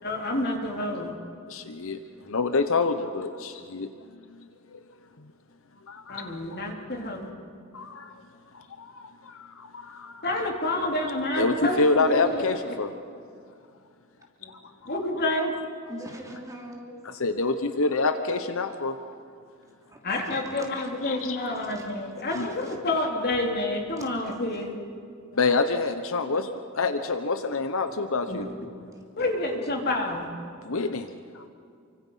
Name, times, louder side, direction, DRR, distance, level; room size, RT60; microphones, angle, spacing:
voice 1, 0.0-1.2 6.1-7.3 10.2-12.5 14.4-14.5 14.9-15.5 20.0-24.7 28.3-28.5 29.2-30.3, left 1 dB, 50° left, 1 dB, 3.5 m, -29 dB
voice 2, 1.5-3.9 4.4-4.5 4.7-4.8 5.9-6.6 7.7-8.2 8.5-10.2 11.4-12.9 14.5-14.6 17.1-19.2 21.0-21.4 22.3-22.5 25.3-28.5 30.6-31.4, left 3 dB, 70° left, 9 dB, 1.0 m, -27 dB
voice 3, 15.9-17.0 19.9-20.0 20.2-20.9 21.7-21.8 22.1-22.8 24.0-24.3, right 1 dB, 15° right, 0 dB, 3.1 m, -42 dB
29.0 x 24.5 x 5.7 m, 2.3 s
head